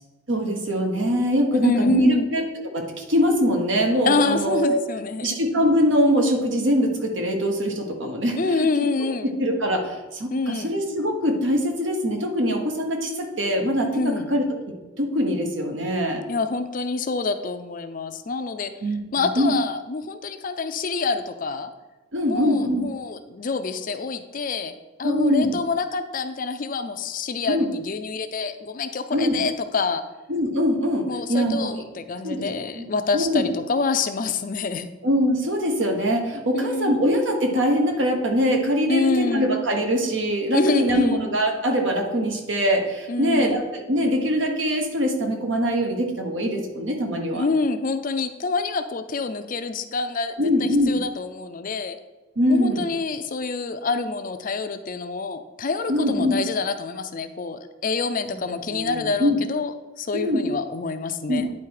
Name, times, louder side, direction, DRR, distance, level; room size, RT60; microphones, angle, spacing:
voice 1, 0.3-2.4 2.7-4.8 5.2-9.1 9.4-14.4 15.0-16.2 18.8-19.5 22.1-22.9 25.0-25.5 27.5-27.7 29.1-29.4 30.3-31.8 32.2-32.5 32.7-32.8 33.1-33.5 35.0-47.5 50.4-51.0 52.4-52.8 55.9-56.4 58.4-59.4 60.1-60.4 61.3-61.5, equal, 65° right, 3 dB, 1.2 m, -23 dB
voice 2, 1.6-2.3 4.0-5.4 8.4-9.3 10.3-10.7 13.9-14.3 16.3-18.7 19.1-21.7 22.3-24.7 25.0-30.0 31.1-34.9 36.5-37.0 38.9-39.5 40.5-41.2 43.1-43.6 47.3-52.0 52.5-61.5, left 4 dB, 45° left, 9 dB, 0.5 m, -26 dB
9.8 x 4.1 x 4.8 m, 1.1 s
head